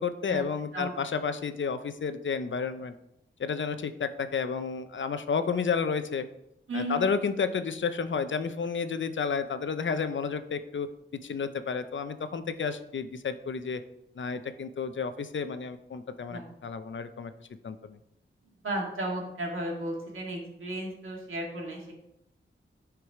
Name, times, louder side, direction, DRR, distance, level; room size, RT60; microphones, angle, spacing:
voice 1, 0.0-2.9 3.4-6.2 6.7-10.9 11.2-13.8 14.2-17.3 17.6-18.0, left 5 dB, 70° left, 10 dB, 0.7 m, -31 dB
voice 2, 6.7-7.1 16.3-16.4 18.6-21.9, right 1 dB, 90° right, -1 dB, 2.2 m, -34 dB
9.4 x 4.8 x 4.8 m, 0.82 s
wide cardioid pair, 90°, 20 cm